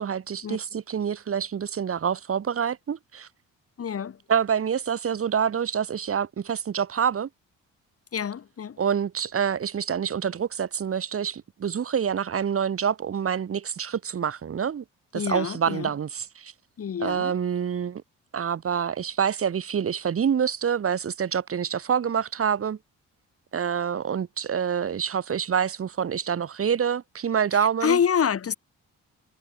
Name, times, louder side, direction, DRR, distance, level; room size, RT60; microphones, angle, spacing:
voice 1, 0.0-3.3 4.3-7.3 8.8-14.8 15.1-16.5 17.0-18.0 18.3-22.8 23.5-28.0, right 7 dB, 50° right, 2.3 m, -27 dB
voice 2, 3.8-4.2 8.1-8.8 15.1-15.9 16.8-17.3 27.5-28.5, left 7 dB, 50° left, 4.1 m, -27 dB
cardioid pair, 90°, 30 cm